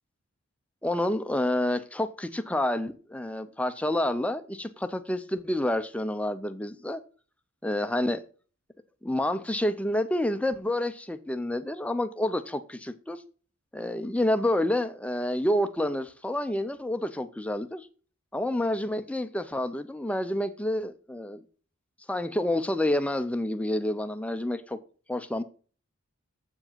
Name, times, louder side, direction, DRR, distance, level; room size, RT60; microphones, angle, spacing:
voice 1, 0.8-7.0 7.6-8.2 9.0-13.2 13.7-17.9 18.3-21.4 22.1-24.8 25.1-25.4, left 1 dB, 5° left, 0.4 m, -28 dB
7.7 x 4.8 x 7.3 m
head